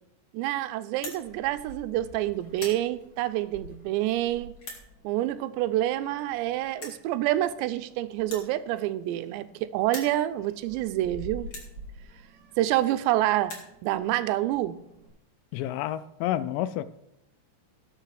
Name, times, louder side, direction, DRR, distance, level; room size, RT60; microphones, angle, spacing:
voice 1, 0.3-4.6 5.0-11.5 12.6-13.5 13.8-14.8, right 14 dB, 90° right, 12 dB, 2.8 m, -27 dB
sound 1, 1.0-1.2 1.9-2.1 2.4-2.8 3.6-3.7 4.6-4.8 5.9-6.0 6.2-6.3 6.8-7.0 8.2-9.5 9.8-10.2 10.9-11.0 11.5-11.7 12.6-12.7 12.9-13.0 13.3-13.7, left 2 dB, 45° left, 2.5 m, -41 dB
Meow, 1.1-15.1, right 2 dB, 25° right, 2.8 m, -49 dB
voice 2, 15.5-16.8, left 12 dB, 90° left, 14 dB, 2.8 m, -29 dB
19.0 x 6.9 x 3.3 m, 0.83 s
omnidirectional pair, 5.0 m